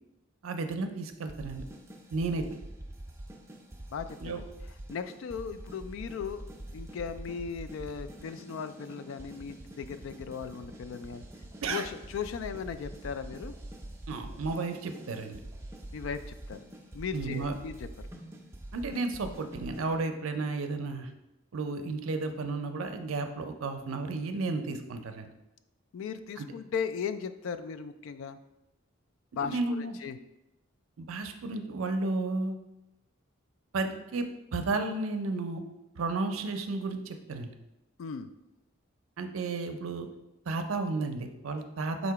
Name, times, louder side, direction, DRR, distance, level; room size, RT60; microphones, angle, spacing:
voice 1, 0.4-1.6 2.1-2.4 4.2-4.4 11.6-11.9 14.1-15.4 17.1-17.5 18.7-21.1 21.5-25.3 26.4-26.5 29.4-30.0 31.0-32.6 33.7-35.6 35.9-37.5 39.2-40.1 40.5-42.1, right 3 dB, 80° right, 6 dB, 0.5 m, -33 dB
sound 1, 1.3-20.0, right 1 dB, 15° right, 0.5 m, -45 dB
voice 2, 3.9-4.5 4.9-6.4 6.7-11.2 11.7-13.5 15.9-16.6 16.9-17.9 25.9-28.4 29.3-30.2 38.0-38.3, left 6 dB, 70° left, 11 dB, 0.3 m, -37 dB
4.0 x 2.9 x 4.6 m, 0.93 s
head